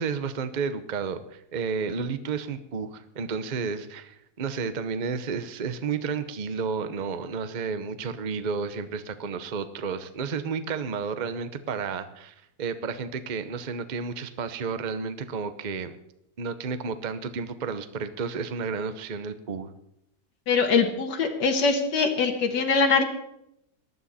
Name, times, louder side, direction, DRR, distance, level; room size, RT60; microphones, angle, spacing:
voice 1, 0.0-15.9 16.4-19.7, right 5 dB, 35° right, 11 dB, 0.8 m, -31 dB
voice 2, 20.5-23.0, left 4 dB, 80° left, 3 dB, 2.1 m, -22 dB
19.0 x 12.5 x 4.3 m, 0.78 s
omnidirectional pair, 1.8 m